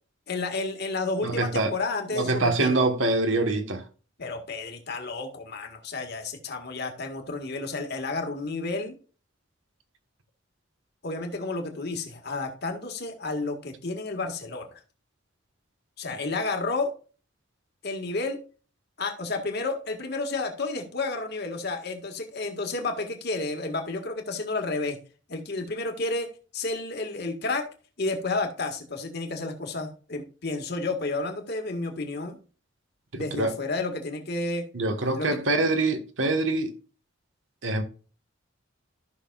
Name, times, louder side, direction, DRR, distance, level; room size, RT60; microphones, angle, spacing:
voice 1, 0.3-2.8 4.2-9.0 11.0-14.8 16.0-16.9 17.8-18.4 19.0-25.0 25.3-26.3 26.5-27.7 28.0-32.4 33.1-34.7 35.1-35.4, left 3 dB, 55° left, 1.8 m, -31 dB
voice 2, 1.2-1.7 2.1-3.8 33.1-33.5 34.7-36.7 37.6-37.8, right 2 dB, 75° right, 1.4 m, -25 dB
14.5 x 6.0 x 2.4 m
head